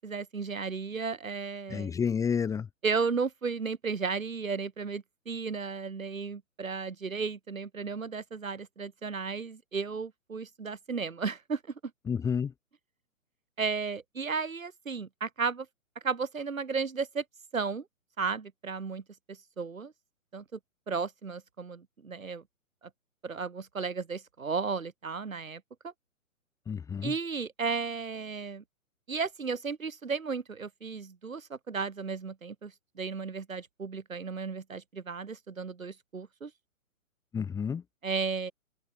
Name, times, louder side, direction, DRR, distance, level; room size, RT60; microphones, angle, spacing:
voice 1, 0.0-1.9 2.8-11.6 13.6-15.7 16.0-17.2 17.5-17.8 18.2-19.0 19.3-19.9 20.3-20.6 20.9-22.4 23.2-25.9 27.0-28.6 29.1-36.5 38.0-38.5, right 5 dB, 70° right, 7.7 m, -34 dB
voice 2, 1.7-2.7 12.1-12.5 26.7-27.1 37.3-37.8, left 6 dB, 10° left, 1.3 m, -30 dB
figure-of-eight pair, 130°, 41 cm